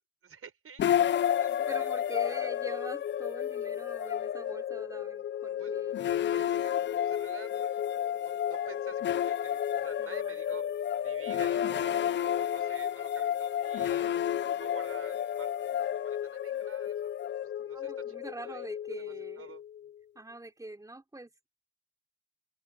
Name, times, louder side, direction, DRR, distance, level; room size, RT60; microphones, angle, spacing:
voice 1, 0.2-1.9 2.2-2.4 2.7-2.8 5.6-5.8 6.1-7.8 8.1-10.7 11.0-14.2 14.6-17.1 17.4-18.2 18.4-18.7 19.0-19.6, right 6 dB, 50° right, 6.0 m, -50 dB
sound 1, 0.8-19.9, left 10 dB, 40° left, 0.4 m, -31 dB
voice 2, 1.5-6.0 10.0-10.4 17.7-19.5 20.2-21.5, right 2 dB, 10° right, 3.9 m, -44 dB
cardioid pair, 90°, 30 cm